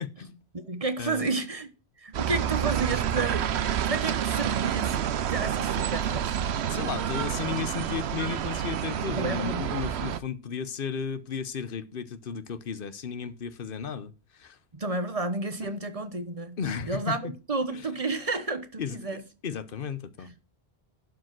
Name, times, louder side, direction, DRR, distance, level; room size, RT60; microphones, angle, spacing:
voice 1, 0.0-0.4 1.0-1.3 6.7-14.6 15.8-15.9 16.6-17.3 17.7-17.8 18.8-20.3, left 7 dB, 60° left, 1.1 m, -34 dB
voice 2, 0.5-1.7 2.0-3.6 3.8-5.0 5.3-6.4 9.2-9.6 14.7-16.6 16.8-19.2, right 3 dB, 35° right, 1.2 m, -31 dB
sound 1, 2.1-10.2, right 9 dB, 85° right, 1.0 m, -29 dB
11.5 x 5.3 x 6.0 m
omnidirectional pair, 1.1 m